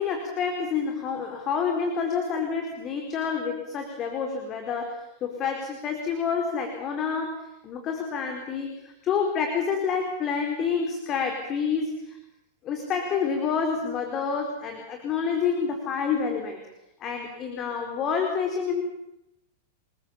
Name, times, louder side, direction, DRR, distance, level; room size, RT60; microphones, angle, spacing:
voice 1, 0.0-12.2 12.6-16.6 17.0-18.8, left 6 dB, 35° left, 4 dB, 4.4 m, -28 dB
28.5 x 21.5 x 7.1 m, 0.87 s
figure-of-eight pair, 95°, 0 cm